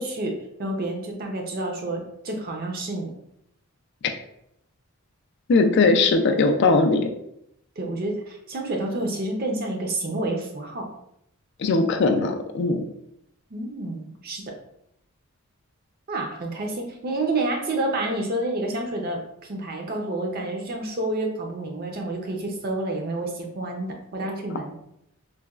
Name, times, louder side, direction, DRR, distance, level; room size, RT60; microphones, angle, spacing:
voice 1, 0.0-3.1 7.8-10.9 13.5-14.5 16.1-24.8, right 2 dB, 40° right, 2 dB, 0.5 m, -29 dB
voice 2, 5.5-7.1 11.6-12.8, left 3 dB, 50° left, 5 dB, 0.3 m, -19 dB
3.9 x 2.2 x 2.3 m, 0.76 s
head